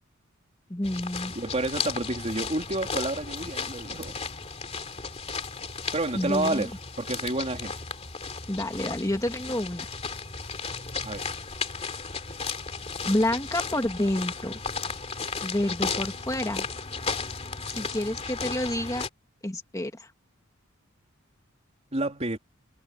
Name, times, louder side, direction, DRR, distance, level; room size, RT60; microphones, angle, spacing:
voice 1, 0.7-1.3 6.1-6.7 8.5-9.9 13.0-14.6 15.4-16.6 17.7-19.0 19.4-20.1, left 1 dB, 15° left, 1.8 m, -29 dB
sound 1, 0.8-19.1, left 5 dB, 30° left, 2.6 m, -35 dB
voice 2, 1.3-4.1 5.9-6.7 7.0-7.7 11.0-11.3 21.9-22.4, right 2 dB, 30° right, 3.3 m, -29 dB
head